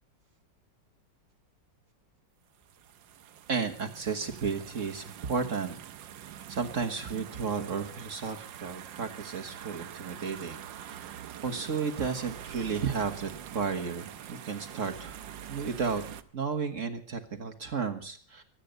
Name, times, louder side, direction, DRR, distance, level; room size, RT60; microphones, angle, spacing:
sound 1, 2.6-16.2, right 10 dB, 85° right, 1.6 m, -45 dB
voice 1, 3.5-5.8 6.2-15.2 15.5-16.0 16.3-18.4, right 5 dB, 45° right, 5 dB, 1.6 m, -33 dB
24.5 x 9.2 x 5.2 m, 0.44 s
omnidirectional pair, 2.0 m